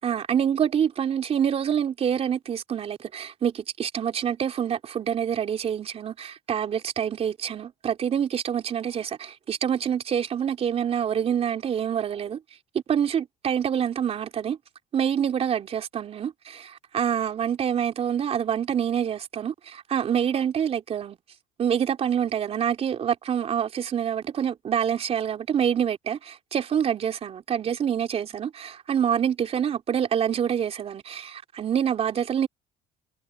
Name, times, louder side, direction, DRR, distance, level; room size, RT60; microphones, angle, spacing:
voice 1, 0.0-12.4 12.7-14.6 14.9-21.2 21.6-32.5, right 8 dB, 45° right, 3.6 m, -26 dB
supercardioid pair, 90°, 14 cm